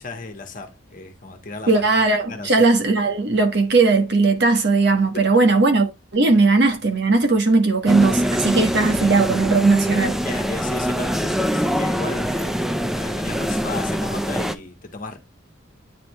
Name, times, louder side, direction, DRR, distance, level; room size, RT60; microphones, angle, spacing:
voice 1, 0.0-2.0 2.3-2.7 5.3-5.4 10.2-12.7 12.9-15.2, left 3 dB, 45° left, 1.3 m, -34 dB
voice 2, 1.7-10.2, right 3 dB, 60° right, 1.4 m, -18 dB
sound 1, 7.9-14.5, equal, ahead, 0.5 m, -23 dB
9.4 x 3.4 x 3.1 m
head